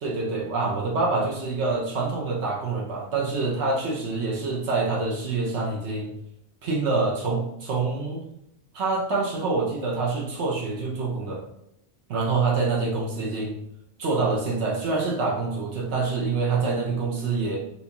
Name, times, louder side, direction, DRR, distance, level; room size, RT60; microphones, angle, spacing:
voice 1, 0.0-6.1 6.6-8.2 8.7-11.4 12.1-13.6 14.0-17.6, right 3 dB, 80° right, -3 dB, 1.1 m, -26 dB
6.1 x 2.7 x 2.9 m, 0.79 s
omnidirectional pair, 1.1 m